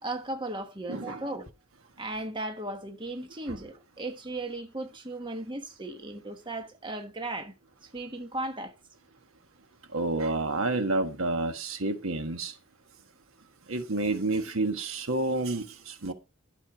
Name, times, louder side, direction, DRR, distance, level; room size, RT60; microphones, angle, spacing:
voice 1, 0.0-1.5 2.0-7.5 7.8-8.7, right 2 dB, 20° right, 1.2 m, -36 dB
voice 2, 0.9-1.2 3.5-3.6 9.9-12.5 13.7-16.1, right 2 dB, 70° right, 1.4 m, -29 dB
12.0 x 6.6 x 5.0 m
head